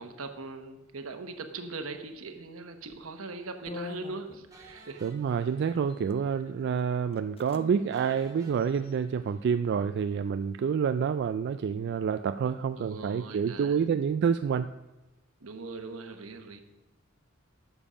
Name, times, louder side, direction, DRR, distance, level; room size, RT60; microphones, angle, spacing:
voice 1, 0.0-5.1 7.5-7.8 12.8-13.9 15.4-16.6, right 3 dB, 80° right, 7 dB, 1.1 m, -41 dB
sound 1, 2.9-3.1 3.7-4.8 5.8-6.2 6.8-6.9 7.1-7.6 7.9-8.0 8.5-9.2, left 3 dB, 30° left, 0.6 m, -44 dB
sound 2, 4.5-6.4 6.7-6.8 7.1-7.2 7.9-10.2, right 2 dB, 15° right, 2.4 m, -57 dB
voice 2, 5.0-14.7, right 6 dB, 55° right, 10 dB, 0.3 m, -28 dB
12.5 x 7.1 x 5.0 m, 1.0 s
head